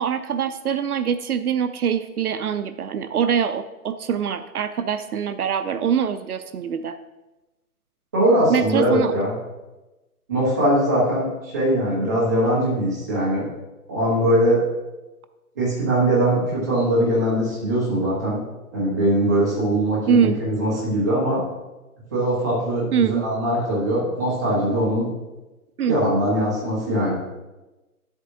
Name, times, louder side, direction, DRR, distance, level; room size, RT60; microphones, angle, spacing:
voice 1, 0.0-7.0 8.5-9.1 20.1-20.4 22.9-23.2 25.8-26.0, right 7 dB, 70° right, 11 dB, 0.6 m, -23 dB
voice 2, 8.1-9.3 10.3-13.5 13.9-14.6 15.5-18.4 18.7-21.4 22.1-25.1 25.9-27.1, right 1 dB, 10° right, -7 dB, 1.1 m, -21 dB
10.0 x 8.0 x 2.7 m, 1.1 s
hypercardioid pair, 180°, 46 cm